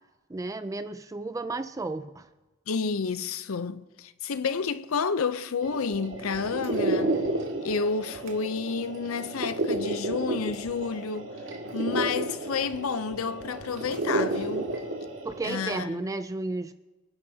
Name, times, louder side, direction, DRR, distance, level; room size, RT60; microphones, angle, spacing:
voice 1, 0.3-2.3 15.2-16.7, right 2 dB, 15° right, 0.3 m, -33 dB
voice 2, 2.7-7.1 7.6-11.3 11.7-14.7 15.4-16.1, left 5 dB, 80° left, 0.6 m, -30 dB
sound 1, 5.6-15.9, right 1 dB, 65° right, 2.1 m, -32 dB
28.5 x 10.5 x 2.8 m
head